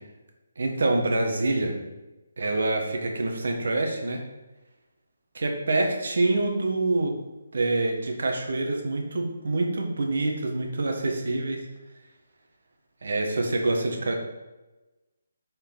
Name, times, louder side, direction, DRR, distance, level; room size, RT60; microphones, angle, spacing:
voice 1, 0.6-1.7 2.4-4.2 5.3-7.1 7.5-11.6 13.0-14.2, right 2 dB, 65° right, 2 dB, 1.3 m, -26 dB
7.2 x 4.4 x 3.9 m, 1.1 s
hypercardioid pair, 170°, 0 cm